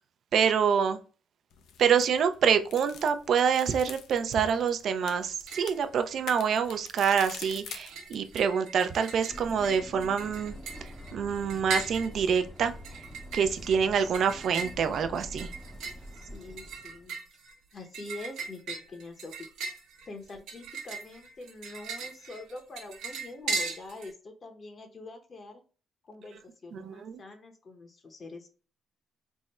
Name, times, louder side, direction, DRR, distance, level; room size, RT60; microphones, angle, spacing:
voice 1, 0.3-1.0 1.8-10.5 10.8-13.0 13.3-15.5 26.7-27.2, right 7 dB, 65° right, 9 dB, 0.4 m, -26 dB
sound 1, 1.5-8.5, left 7 dB, 80° left, 0.5 m, -46 dB
sound 2, 5.2-5.8 6.1-6.8 7.1-24.1, right 3 dB, 85° right, 0.8 m, -39 dB
sound 3, 9.3-17.1, left 1 dB, 10° left, 0.6 m, -45 dB
voice 2, 16.3-17.2 17.7-19.3 20.1-25.6 26.0-28.5, left 2 dB, 40° left, 5 dB, 0.8 m, -44 dB
3.5 x 2.1 x 4.1 m, 0.38 s
cardioid pair, 90°, 0 cm